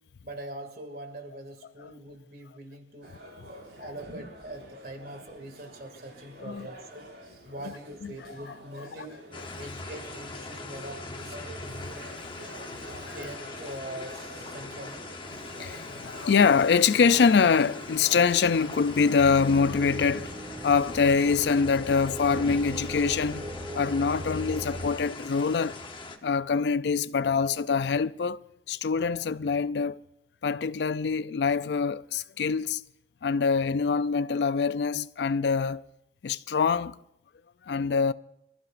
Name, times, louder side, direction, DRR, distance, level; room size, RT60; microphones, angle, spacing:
voice 1, 0.2-3.1 3.8-7.1 7.4-9.2 9.6-11.4 13.1-15.1, right 1 dB, 55° right, 2.3 m, -42 dB
sound 1, 3.0-19.2, equal, 70° right, 6.4 m, -47 dB
sound 2, 9.3-26.2, left 3 dB, 25° left, 1.0 m, -41 dB
voice 2, 15.6-20.3 20.6-23.5 23.7-25.8 26.2-28.4 28.7-30.0 30.4-32.8 33.2-35.8 36.2-37.0 37.7-38.1, left 5 dB, 75° left, 0.4 m, -24 dB
sound 3, 19.2-24.9, equal, 15° right, 1.1 m, -38 dB
25.0 x 15.0 x 2.5 m
head